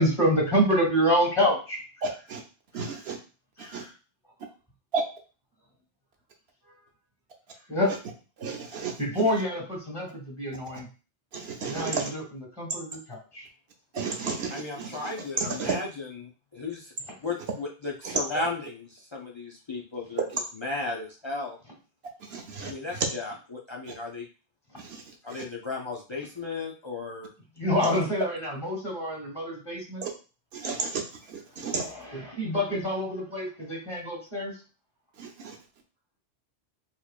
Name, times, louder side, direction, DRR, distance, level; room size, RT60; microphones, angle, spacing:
voice 1, 0.0-1.8 3.6-3.8 7.7-7.9 9.0-10.9 11.7-12.2 12.6-13.4 27.6-30.0 32.3-34.5, equal, 25° left, 1.7 m, -27 dB
voice 2, 2.0-2.4 2.7-3.2 3.6-3.8 4.9-5.0 7.9-8.0 8.4-9.3 11.3-12.1 13.9-15.7 18.0-18.2 22.2-23.1 23.9-24.0 24.8-25.4 27.8-27.9 30.0-30.1 30.5-31.9 35.2-35.6, right 4 dB, 65° right, 0.9 m, -33 dB
voice 3, 14.5-16.1 16.5-16.9 17.2-20.2 20.6-21.6 22.6-23.3 23.7-24.3 25.2-27.3 27.8-27.9, left 3 dB, 45° left, 0.4 m, -34 dB
4.3 x 2.9 x 2.4 m
omnidirectional pair, 1.2 m